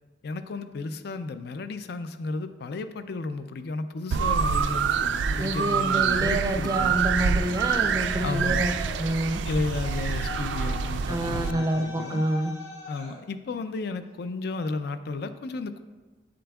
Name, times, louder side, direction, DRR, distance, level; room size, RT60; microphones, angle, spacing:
voice 1, 0.2-7.0 8.2-8.6 9.5-12.2 12.9-15.8, left 3 dB, 60° left, 11 dB, 0.4 m, -33 dB
sound 1, 4.1-11.5, right 6 dB, 85° right, 0.3 m, -26 dB
voice 2, 5.4-9.4 11.1-12.5, right 1 dB, 20° right, 5 dB, 0.5 m, -28 dB
Yell, 7.8-9.1 9.8-13.2, left 2 dB, 80° left, 1.9 m, -41 dB
8.5 x 7.6 x 2.3 m, 1.3 s
head